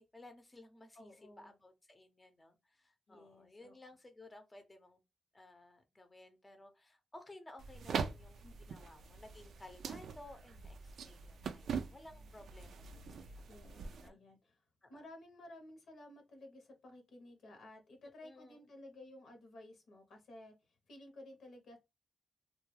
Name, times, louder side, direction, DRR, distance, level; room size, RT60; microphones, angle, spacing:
voice 1, 0.0-1.1 1.4-5.0 5.3-13.4 14.0-14.2 14.8-15.0 18.2-18.6, left 2 dB, 25° left, 0.6 m, -57 dB
voice 2, 0.9-1.5 3.1-3.7 8.4-8.9 13.4-14.6 14.9-21.8, left 1 dB, 80° left, 0.9 m, -55 dB
sound 1, 7.6-14.1, right 6 dB, 85° right, 0.3 m, -43 dB
2.3 x 2.2 x 3.1 m
cardioid pair, 70°, 0 cm